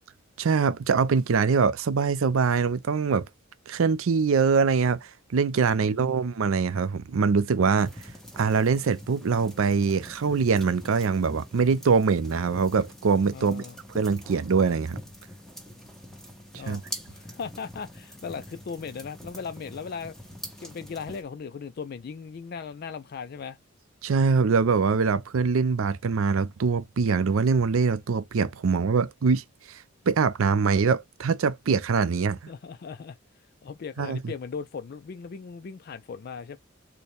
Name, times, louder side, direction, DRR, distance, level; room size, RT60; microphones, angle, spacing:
voice 1, 0.4-3.3 3.7-7.9 8.4-13.6 13.9-15.0 16.7-16.8 24.0-32.4 34.0-34.3, right 5 dB, 75° right, 0.5 m, -23 dB
voice 2, 5.7-6.3 13.3-13.8 16.5-20.1 20.6-23.6 32.5-33.2 33.6-36.6, left 5 dB, 45° left, 0.3 m, -38 dB
sound 1, 7.8-21.2, equal, ahead, 0.9 m, -44 dB
4.3 x 2.2 x 3.2 m
head